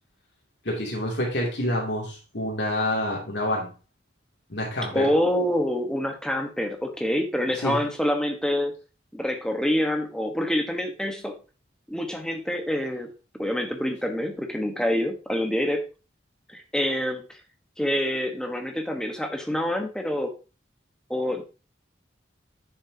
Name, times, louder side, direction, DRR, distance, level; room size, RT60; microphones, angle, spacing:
voice 1, 0.6-3.7 4.5-5.1 7.6-7.8, left 1 dB, 65° left, 2.7 m, -27 dB
voice 2, 4.9-8.7 9.1-11.4 11.9-13.1 13.4-15.8 16.5-17.4 17.8-20.3 21.1-21.4, equal, 5° left, 1.2 m, -26 dB
9.8 x 6.9 x 2.9 m
head